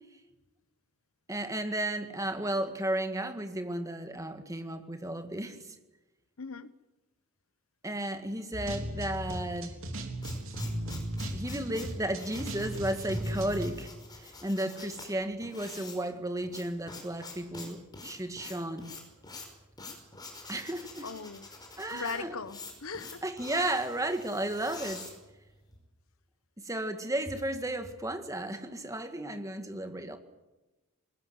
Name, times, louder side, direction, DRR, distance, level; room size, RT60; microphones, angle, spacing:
voice 1, 1.3-5.7 7.8-9.8 11.3-18.9 20.5-21.1 21.8-22.4 23.2-25.1 26.6-30.2, right 1 dB, 15° right, 1.9 m, -34 dB
voice 2, 6.4-6.7 21.0-21.5 21.9-23.2, left 4 dB, 65° left, 1.0 m, -39 dB
sound 1, 8.5-13.7, right 1 dB, 60° right, 3.7 m, -36 dB
sound 2, 9.8-25.8, left 3 dB, 20° left, 5.5 m, -47 dB
21.0 x 20.0 x 9.4 m
head